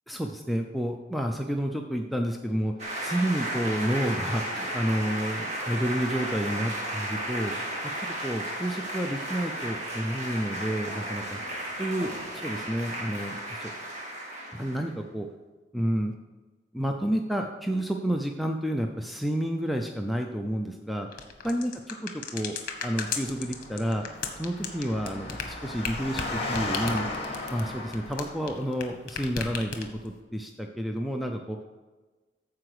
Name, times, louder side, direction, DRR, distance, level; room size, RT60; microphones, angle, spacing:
voice 1, 0.1-2.7 3.0-7.5 8.2-11.4 11.8-12.1 12.4-13.7 14.5-15.3 15.7-16.1 16.7-21.1 21.4-21.7 22.1-22.6 22.8-24.0 24.4-27.1 27.5-31.6, equal, ahead, 3 dB, 0.5 m, -30 dB
sound 1, 2.8-14.9, right 1 dB, 40° right, 2.1 m, -34 dB
sound 2, 21.1-28.8 29.1-30.1, left 6 dB, 50° left, 1.3 m, -35 dB
Engine, 23.0-28.6, left 2 dB, 35° left, 1.8 m, -36 dB
14.0 x 4.8 x 4.8 m, 1.3 s
head